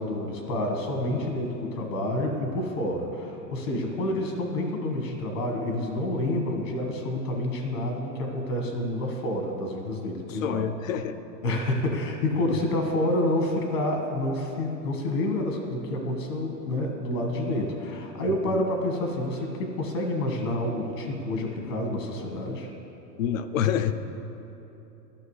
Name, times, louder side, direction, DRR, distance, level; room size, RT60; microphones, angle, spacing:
voice 1, 0.0-10.6 11.4-22.7, left 1 dB, 70° left, 2 dB, 1.5 m, -28 dB
voice 2, 10.2-11.2 12.5-12.6 18.4-18.6 23.2-23.9, left 9 dB, 55° left, 11 dB, 0.5 m, -27 dB
14.0 x 5.8 x 3.2 m, 3.0 s
supercardioid pair, 175°, 50 cm